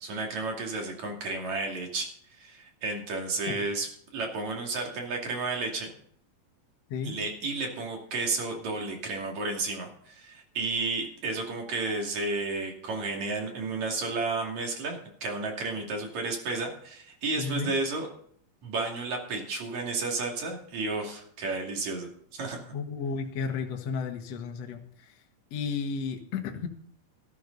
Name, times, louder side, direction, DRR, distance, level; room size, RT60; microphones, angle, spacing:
voice 1, 0.0-2.1 2.4-3.9 4.1-5.9 7.0-18.1 18.6-22.7, right 3 dB, 50° right, 1 dB, 3.6 m, -32 dB
voice 2, 17.4-17.7 22.7-25.2 25.5-26.7, left 5 dB, 55° left, 3 dB, 2.2 m, -33 dB
13.5 x 13.0 x 4.0 m, 0.63 s
omnidirectional pair, 4.2 m